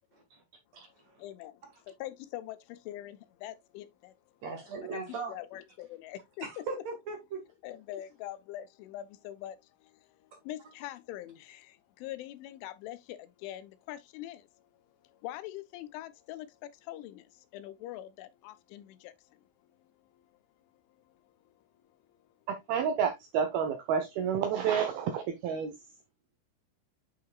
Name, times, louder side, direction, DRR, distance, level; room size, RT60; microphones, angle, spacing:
voice 1, 0.1-0.4 0.7-1.2 4.4-5.4 6.4-7.5, right 4 dB, 55° right, 2.0 m, -39 dB
voice 2, 1.0-4.2 4.5-4.6 4.9-5.0 5.3-6.6 7.6-19.5 19.8-20.3 21.1-21.6 22.1-22.2, left 13 dB, 85° left, 3.1 m, -44 dB
voice 3, 22.5-25.8, right 7 dB, 80° right, 2.2 m, -30 dB
8.4 x 5.7 x 2.3 m
omnidirectional pair, 5.4 m